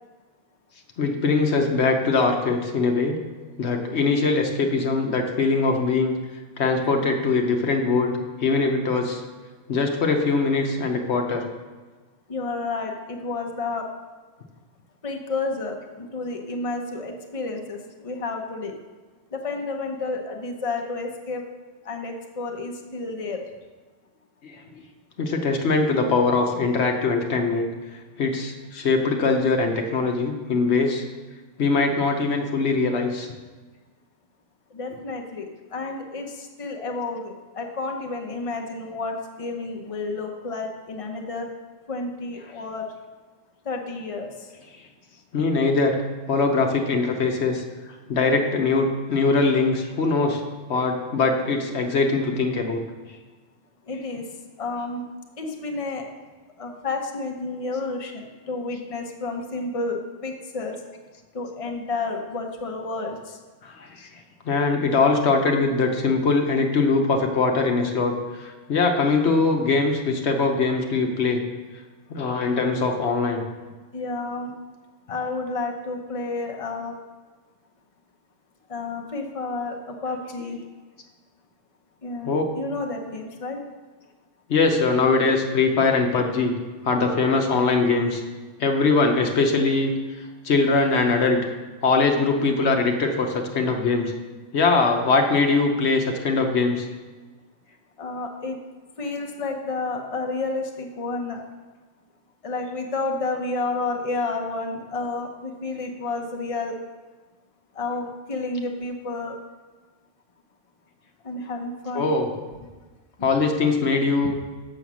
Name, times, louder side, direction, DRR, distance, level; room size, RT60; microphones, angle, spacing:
voice 1, 1.0-3.2 3.6-6.1 6.6-9.2 9.7-11.5 24.4-24.8 25.2-27.7 28.2-31.0 31.6-33.3 42.4-42.5 45.3-46.0 46.3-47.6 48.1-50.4 50.7-52.8 63.8-64.1 64.5-71.4 72.1-73.4 80.4-80.5 82.2-82.4 84.5-86.5 86.8-88.2 88.6-89.9 90.4-91.4 91.8-94.1 94.5-96.9 111.9-112.3 113.2-114.4, left 4 dB, 75° left, 3 dB, 1.2 m, -22 dB
voice 2, 12.3-13.9 15.0-18.7 19.3-21.4 21.8-23.4 34.7-35.5 35.7-41.5 41.9-42.9 43.6-44.5 53.9-54.2 54.6-55.0 55.4-56.1 56.6-60.8 61.3-63.4 72.5-72.6 73.9-74.5 75.1-77.0 78.7-80.6 82.0-83.6 98.0-98.6 99.0-101.4 102.4-106.8 107.7-109.4 111.2-112.1, left 3 dB, 30° left, 2 dB, 1.0 m, -30 dB
7.1 x 6.8 x 6.2 m, 1.3 s
omnidirectional pair, 1.2 m